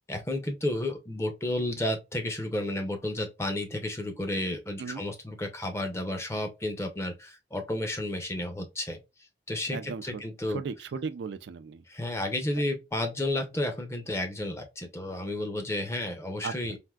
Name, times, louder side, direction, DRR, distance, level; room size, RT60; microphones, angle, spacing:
voice 1, 0.1-9.0 9.5-10.6 11.9-16.8, left 1 dB, 15° left, 0.6 m, -32 dB
voice 2, 9.7-10.2 10.5-11.8 16.4-16.5, right 5 dB, 85° right, 0.4 m, -36 dB
3.4 x 2.5 x 2.2 m
head